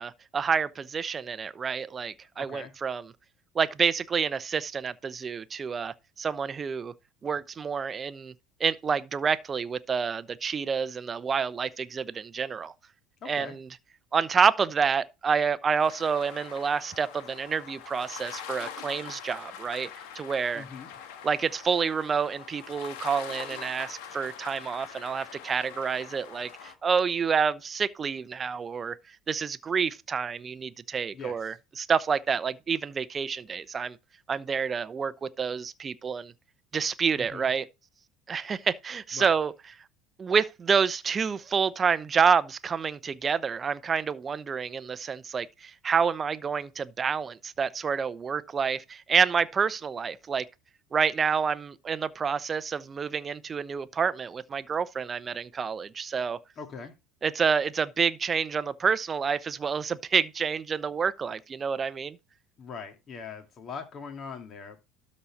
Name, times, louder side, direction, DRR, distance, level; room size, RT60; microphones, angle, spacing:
voice 1, 0.0-3.1 3.5-6.9 7.2-8.3 8.6-12.7 13.2-13.8 14.1-19.9 20.1-20.7 21.2-29.0 29.3-34.0 34.3-36.3 36.7-37.7 38.3-39.5 40.2-50.4 50.9-56.4 57.2-62.2, right 6 dB, 30° right, 0.7 m, -28 dB
voice 2, 2.4-2.7 13.2-13.5 20.5-20.9 31.1-31.3 37.1-37.4 39.2-39.3 56.6-56.9 62.6-64.8, left 5 dB, 40° left, 2.3 m, -41 dB
sound 1, 15.8-26.7, left 8 dB, 70° left, 1.4 m, -43 dB
12.5 x 4.3 x 4.3 m
hypercardioid pair, 70°, 0 cm